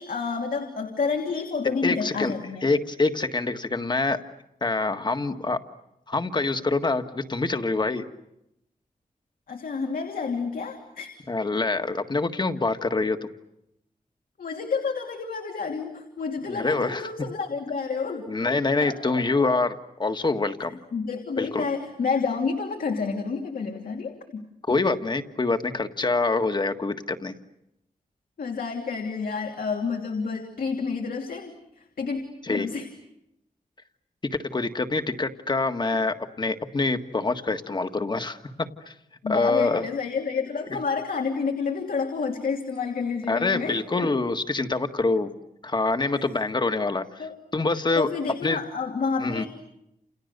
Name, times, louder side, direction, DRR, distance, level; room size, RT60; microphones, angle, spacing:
voice 1, 0.0-2.6 9.5-11.1 14.4-18.3 18.8-19.2 20.9-24.4 28.4-32.2 32.5-32.9 39.2-43.8 46.1-46.2 47.2-47.4 48.0-49.5, left 5 dB, 80° left, 3 dB, 2.9 m, -29 dB
voice 2, 1.8-2.3 2.6-4.2 4.6-5.6 6.1-8.0 11.3-13.2 16.5-17.1 18.3-20.8 21.4-21.6 24.7-27.3 32.4-32.7 34.3-38.4 38.9-39.0 39.3-39.8 43.3-45.3 45.6-47.3 47.5-48.1 48.4-48.6 49.2-49.5, left 3 dB, 30° left, 8 dB, 1.7 m, -25 dB
30.0 x 29.0 x 6.7 m, 0.83 s
wide cardioid pair, 150°, 14 cm